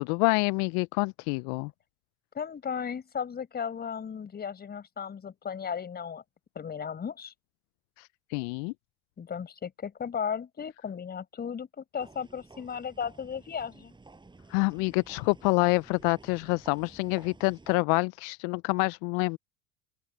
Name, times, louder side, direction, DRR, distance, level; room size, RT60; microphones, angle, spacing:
voice 1, 0.0-1.7 8.0-8.7 14.5-19.4, left 31 dB, 60° left, 0.5 m, -27 dB
voice 2, 2.3-6.2 6.5-7.3 9.2-13.9, left 7 dB, 30° left, 5.9 m, -35 dB
sound 1, 12.0-17.8, right 3 dB, 15° right, 5.8 m, -53 dB
open air
hypercardioid pair, 85°, 31 cm